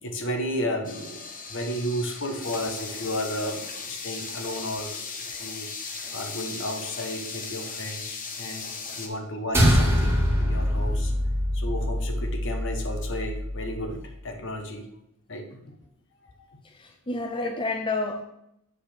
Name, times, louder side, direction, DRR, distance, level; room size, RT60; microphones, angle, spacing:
voice 1, 0.0-8.7 9.0-11.1 11.5-14.9 15.3-15.8 16.4-16.6 17.3-17.5, equal, 60° left, 4 dB, 1.4 m, -33 dB
sound 1, 0.8-9.1, left 4 dB, 40° left, 1.2 m, -37 dB
sound 2, 9.5-14.1, equal, 10° right, 1.9 m, -24 dB
voice 2, 16.6-18.2, left 3 dB, 25° left, 4 dB, 0.6 m, -30 dB
8.0 x 4.2 x 6.8 m, 0.81 s
head